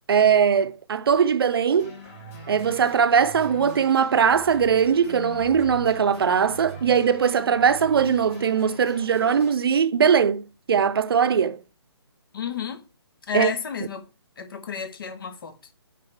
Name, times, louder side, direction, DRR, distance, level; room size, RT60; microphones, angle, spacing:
voice 1, 0.1-1.9 2.5-11.6 13.3-13.5, right 7 dB, 60° right, 0.6 m, -20 dB
sound 1, 1.8-9.5, left 1 dB, 30° left, 2.9 m, -41 dB
voice 2, 12.3-12.8 13.3-14.1 14.4-15.6, left 7 dB, 55° left, 1.3 m, -31 dB
8.5 x 5.2 x 3.2 m
figure-of-eight pair, 145°, 14 cm